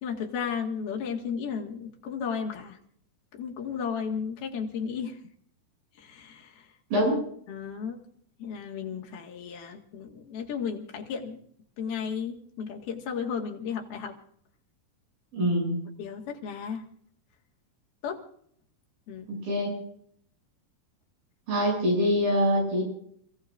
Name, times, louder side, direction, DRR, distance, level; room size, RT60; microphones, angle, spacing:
voice 1, 0.0-2.8 3.3-5.2 6.0-6.7 7.5-8.0 8.4-11.4 11.8-14.2 16.0-16.9 18.0-18.2 19.1-19.3, left 6 dB, 80° left, 1 dB, 3.8 m, -34 dB
voice 2, 6.9-7.2 15.3-15.8 19.3-19.8 21.5-22.8, equal, 70° right, 0 dB, 9.5 m, -24 dB
29.5 x 17.0 x 2.6 m, 0.64 s
omnidirectional pair, 4.3 m